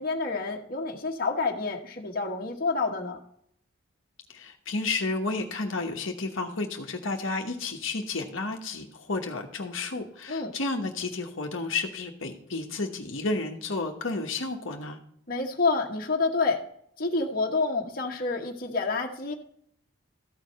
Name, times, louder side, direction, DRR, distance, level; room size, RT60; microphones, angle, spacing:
voice 1, 0.0-3.2 10.3-10.5 15.3-16.6 17.0-19.3, left 3 dB, 45° left, 1 dB, 1.2 m, -28 dB
voice 2, 4.3-15.0, left 3 dB, 65° left, 3 dB, 1.1 m, -31 dB
14.0 x 4.8 x 5.5 m, 0.68 s
head